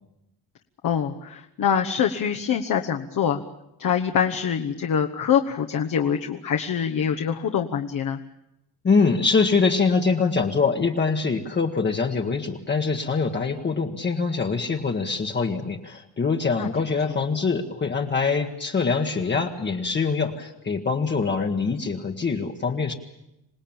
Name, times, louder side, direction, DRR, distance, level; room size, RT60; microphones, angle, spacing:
voice 1, 0.8-3.4 3.8-8.2 16.6-16.7, left 8 dB, 55° left, 4 dB, 1.2 m, -24 dB
voice 2, 8.8-22.9, left 4 dB, 25° left, 3 dB, 1.3 m, -24 dB
26.5 x 19.0 x 8.8 m, 0.86 s
wide cardioid pair, 175°, 40 cm